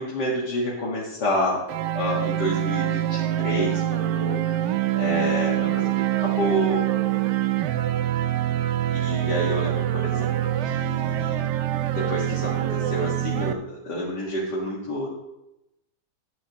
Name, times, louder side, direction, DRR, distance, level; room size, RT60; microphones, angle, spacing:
voice 1, 0.0-1.6 1.9-4.6 4.9-6.8 8.9-11.5 11.9-15.1, left 1 dB, 85° left, -6 dB, 2.3 m, -29 dB
sound 1, 1.7-13.5, right 13 dB, 85° right, 1.2 m, -25 dB
11.5 x 11.0 x 2.9 m, 0.89 s
omnidirectional pair, 1.8 m